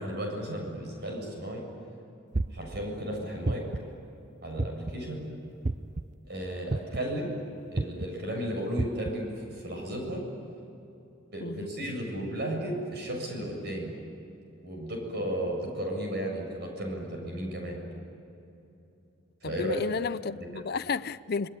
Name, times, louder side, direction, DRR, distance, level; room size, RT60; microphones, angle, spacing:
voice 1, 0.0-1.6 2.5-3.6 4.4-5.2 6.3-7.3 7.7-10.2 11.3-13.9 14.6-17.8 19.4-19.8, equal, 50° right, 7.8 m, -34 dB
sound 1, 2.3-2.8 3.5-3.9 4.6-5.0 5.6-6.0 6.7-7.1 7.8-8.1 8.8-9.1, right 2 dB, 35° right, 0.6 m, -30 dB
voice 2, 19.4-21.5, left 4 dB, 50° left, 0.5 m, -32 dB
27.5 x 20.5 x 9.9 m
head